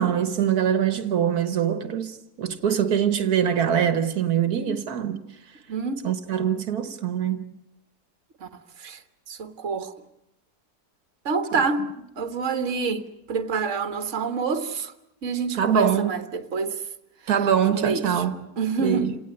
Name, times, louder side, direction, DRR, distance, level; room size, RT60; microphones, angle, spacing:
voice 1, 0.0-5.2 6.0-7.6 11.5-11.6 15.6-16.1 17.3-18.5 18.8-19.2, right 8 dB, 80° right, 1.7 m, -23 dB
voice 2, 9.3-9.9 11.3-14.9 15.2-16.8 17.7-18.2 18.6-19.1, right 4 dB, 55° right, 1.7 m, -27 dB
28.5 x 18.5 x 9.7 m
omnidirectional pair, 1.6 m